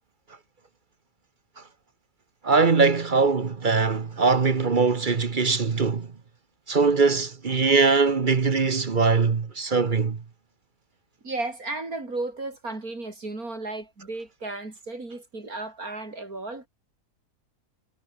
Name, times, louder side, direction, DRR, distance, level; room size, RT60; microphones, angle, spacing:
voice 1, 2.4-6.1 6.7-10.2, right 4 dB, 35° right, 1.1 m, -21 dB
voice 2, 11.2-16.7, right 2 dB, 70° right, 5.7 m, -34 dB
omnidirectional pair, 1.6 m